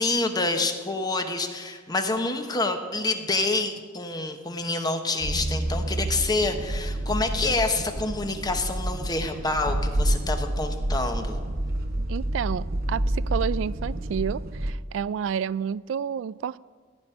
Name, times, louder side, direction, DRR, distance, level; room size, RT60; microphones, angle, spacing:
voice 1, 0.0-11.4, left 3 dB, 20° left, 6 dB, 1.1 m, -27 dB
sound 1, 5.2-14.7, right 1 dB, 55° right, 0.8 m, -28 dB
voice 2, 12.1-16.6, right 7 dB, 75° right, 20 dB, 0.3 m, -30 dB
16.0 x 5.4 x 9.8 m, 1.5 s
head